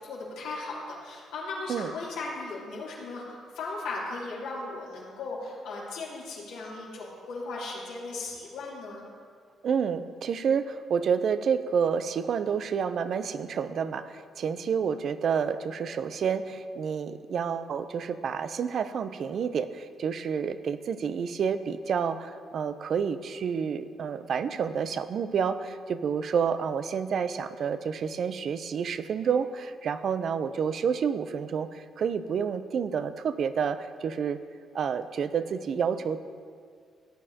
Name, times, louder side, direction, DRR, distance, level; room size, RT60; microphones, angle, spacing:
voice 1, 0.0-9.1, left 3 dB, 85° left, -6 dB, 3.0 m, -37 dB
voice 2, 9.6-34.4 34.7-36.2, right 7 dB, 60° right, 12 dB, 0.5 m, -29 dB
16.5 x 8.7 x 2.8 m, 2.1 s
cardioid pair, 90°, 0 cm